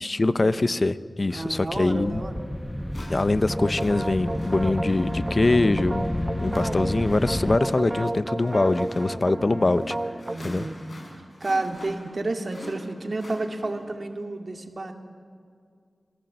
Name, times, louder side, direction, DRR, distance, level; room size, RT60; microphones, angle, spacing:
voice 1, 0.0-2.2 3.1-6.0 6.4-9.9 10.4-10.7, left 2 dB, 40° left, 14 dB, 0.7 m, -23 dB
sound 1, 1.3-7.6, left 1 dB, 10° left, 0.9 m, -31 dB
voice 2, 1.3-2.4 9.3-9.7 10.3-10.8 11.1-14.9, right 2 dB, 50° right, 4 dB, 2.1 m, -31 dB
sound 2, 2.0-2.1 2.9-14.0, left 1 dB, 60° left, 7.5 m, -46 dB
sound 3, 3.5-10.4, right 1 dB, 30° right, 1.0 m, -32 dB
28.0 x 18.5 x 7.9 m, 2.2 s
wide cardioid pair, 75°, 0 cm